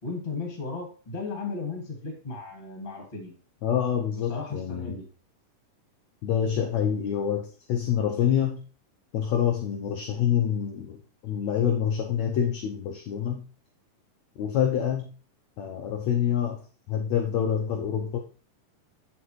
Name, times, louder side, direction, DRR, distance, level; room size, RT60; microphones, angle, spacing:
voice 1, 0.0-3.3 4.1-5.0, left 3 dB, 20° left, 2 dB, 1.5 m, -35 dB
voice 2, 3.6-5.0 6.2-8.6 9.1-13.4 14.4-15.1 15.6-18.2, left 9 dB, 85° left, 4 dB, 1.5 m, -27 dB
8.6 x 7.1 x 3.1 m, 0.38 s
omnidirectional pair, 4.2 m